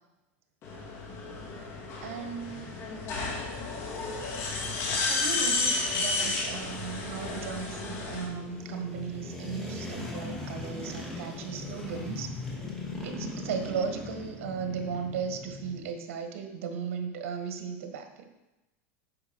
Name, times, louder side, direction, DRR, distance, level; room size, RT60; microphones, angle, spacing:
sound 1, 0.6-8.2, left 3 dB, 40° left, 2.2 m, -32 dB
sound 2, 0.7-15.9, left 2 dB, 5° left, 2.1 m, -41 dB
voice 1, 2.0-2.7 4.9-12.3 13.0-18.3, right 6 dB, 80° right, 5 dB, 1.6 m, -36 dB
9.8 x 6.6 x 4.7 m, 1.0 s
supercardioid pair, 145°, 7 cm